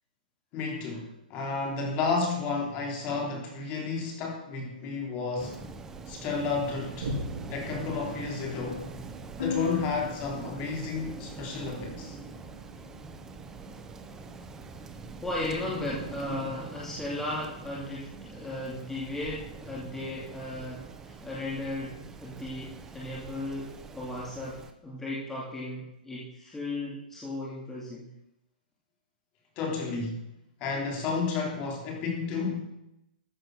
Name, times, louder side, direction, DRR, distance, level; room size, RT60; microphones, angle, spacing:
voice 1, 0.5-5.6 6.1-7.1 7.5-8.8 9.4-12.2 29.6-30.2 30.6-32.7, left 4 dB, 25° left, 1 dB, 3.3 m, -31 dB
Rain, 5.4-24.7, right 4 dB, 10° right, 0.8 m, -44 dB
Boom, 7.0-13.9 14.4-14.5, equal, 55° right, 4.9 m, -42 dB
sound 1, 9.4-13.1, left 5 dB, 85° left, 3.6 m, -40 dB
voice 2, 15.2-28.1, left 2 dB, 5° left, -6 dB, 2.4 m, -36 dB
14.5 x 7.8 x 6.3 m, 0.82 s
hypercardioid pair, 165°, 5 cm